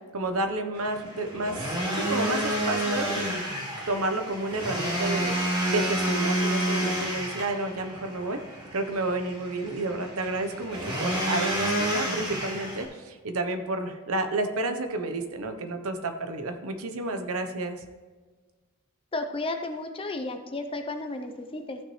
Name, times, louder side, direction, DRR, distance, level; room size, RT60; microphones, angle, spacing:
voice 1, 0.1-3.4 3.9-8.4 8.7-17.8, right 2 dB, 65° right, 7 dB, 0.9 m, -31 dB
sound 1, 0.8-12.8, right 1 dB, 20° right, 2.3 m, -30 dB
voice 2, 19.1-21.8, left 2 dB, 25° left, 6 dB, 0.6 m, -33 dB
14.5 x 6.0 x 3.2 m, 1.4 s
head